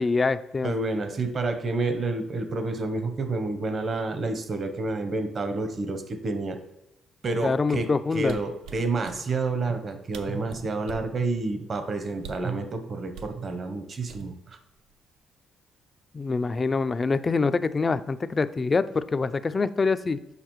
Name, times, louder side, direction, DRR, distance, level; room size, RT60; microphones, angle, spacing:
voice 1, 0.0-0.7 7.4-8.4 16.1-20.2, left 4 dB, 30° left, 13 dB, 0.3 m, -25 dB
voice 2, 0.6-6.6 7.2-14.6, right 3 dB, 45° right, 8 dB, 0.8 m, -29 dB
sound 1, 8.2-9.2 9.9-10.0 10.1-11.1 12.2-12.5 13.1-13.4 14.1-14.5 14.9-15.2, right 4 dB, 90° right, 0.5 m, -43 dB
6.6 x 5.2 x 3.1 m, 0.87 s
cardioid pair, 90°, 0 cm